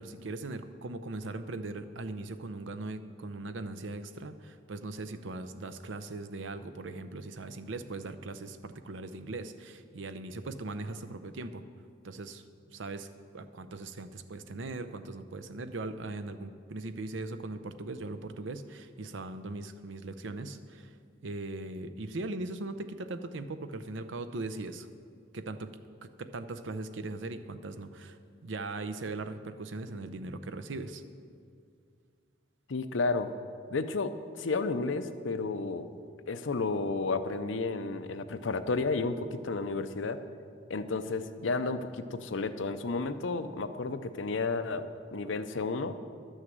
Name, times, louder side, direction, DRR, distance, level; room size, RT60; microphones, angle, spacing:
voice 1, 0.0-11.6 12.0-13.1 13.3-20.9 21.2-24.9 25.3-25.7 26.0-28.2 28.4-31.0, right 2 dB, 80° right, 10 dB, 0.6 m, -39 dB
voice 2, 32.7-33.4 33.7-35.9 36.3-40.2 40.7-46.0, left 3 dB, 90° left, 10 dB, 0.6 m, -32 dB
12.0 x 6.4 x 7.7 m, 2.2 s
head